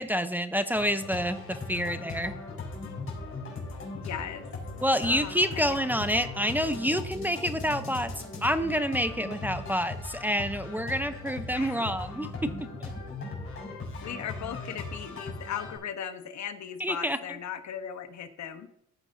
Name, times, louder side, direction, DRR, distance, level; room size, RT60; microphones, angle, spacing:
voice 1, 0.0-2.3 4.8-8.1 8.4-12.7 16.8-17.2, equal, 5° right, 9 dB, 0.7 m, -28 dB
sound 1, 0.7-15.8, left 3 dB, 45° left, 4.6 m, -38 dB
voice 2, 4.0-4.5 5.0-5.7 11.5-11.9 14.0-18.7, left 8 dB, 65° left, 9 dB, 1.1 m, -38 dB
14.5 x 8.9 x 2.7 m, 0.72 s
cardioid pair, 90°, 30 cm